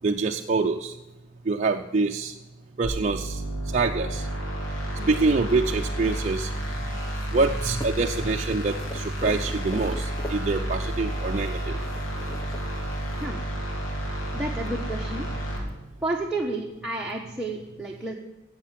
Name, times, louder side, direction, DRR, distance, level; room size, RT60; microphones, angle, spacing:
voice 1, 0.0-0.9 1.5-2.3 2.8-3.4 3.7-4.3 5.1-6.5 7.3-11.8, right 3 dB, 35° right, 1 dB, 0.5 m, -25 dB
sound 1, 2.8-15.6, right 1 dB, 80° left, 3.3 m, -31 dB
sound 2, 5.7-13.3, left 2 dB, 20° left, 0.9 m, -43 dB
voice 2, 14.3-15.3 16.0-18.2, right 2 dB, 5° right, -3 dB, 1.0 m, -31 dB
14.0 x 8.1 x 7.5 m, 0.99 s
head